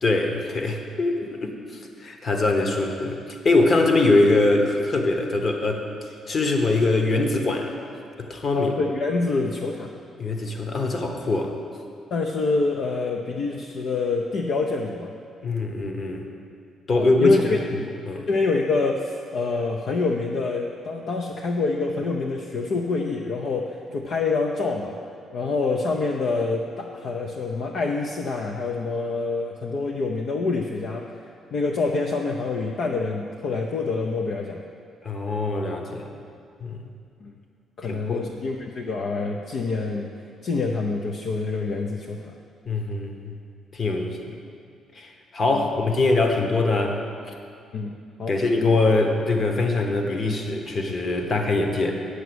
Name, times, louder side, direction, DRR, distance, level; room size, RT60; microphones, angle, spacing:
voice 1, 0.0-7.8 8.2-8.7 10.2-11.6 15.4-16.2 16.9-17.4 17.7-17.8 18.1-18.3 35.0-36.1 36.6-36.9 37.8-38.3 42.6-43.3 43.7-44.2 44.9-47.0 48.3-51.9, left 2 dB, 40° left, 3 dB, 1.2 m, -23 dB
voice 2, 8.5-9.9 12.1-15.1 17.0-17.6 18.3-25.0 25.3-34.6 37.2-37.3 37.8-42.3 45.5-45.7 47.7-48.3, left 3 dB, 65° left, 1 dB, 0.6 m, -26 dB
8.1 x 6.4 x 7.9 m, 2.4 s
cardioid pair, 90°, 0 cm